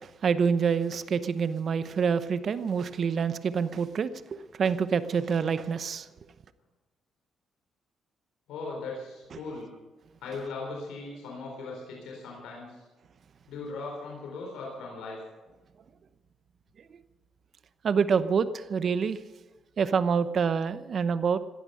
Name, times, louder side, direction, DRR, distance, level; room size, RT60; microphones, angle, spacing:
voice 1, 0.2-6.1 17.8-19.2 19.8-21.4, right 6 dB, 55° right, 13 dB, 0.9 m, -26 dB
voice 2, 8.5-9.7 10.2-12.8 13.5-15.2, left 3 dB, 90° left, -1 dB, 4.0 m, -38 dB
17.5 x 12.5 x 5.7 m, 1.3 s
cardioid pair, 90°, 0 cm